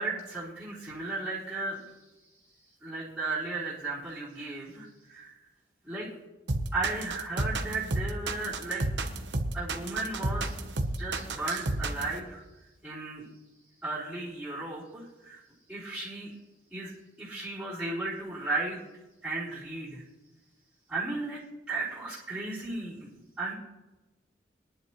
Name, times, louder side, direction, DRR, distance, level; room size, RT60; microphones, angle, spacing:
voice 1, 0.0-1.8 2.8-5.4 5.8-6.1 6.7-8.9 9.5-10.6 10.8-12.4 12.8-13.2 13.8-15.4 15.7-16.3 16.7-16.9 17.2-18.8 19.2-20.0 20.9-21.4 21.7-23.1 23.4-23.5, right 3 dB, 5° right, -11 dB, 4.1 m, -35 dB
sound 1, 6.5-12.2, right 2 dB, 80° right, 1.1 m, -31 dB
21.5 x 10.5 x 3.2 m, 1.1 s
head